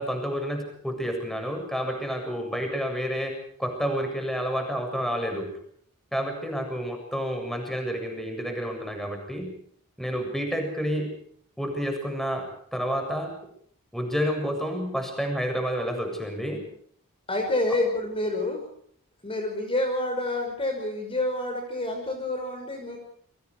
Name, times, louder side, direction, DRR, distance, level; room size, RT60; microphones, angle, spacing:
voice 1, 0.0-5.5 6.1-9.5 10.0-11.1 11.6-13.3 13.9-16.6, equal, ahead, 4 dB, 7.4 m, -29 dB
voice 2, 17.3-18.6 19.2-23.0, left 2 dB, 25° left, 3 dB, 5.8 m, -28 dB
30.0 x 25.5 x 4.8 m, 0.62 s
head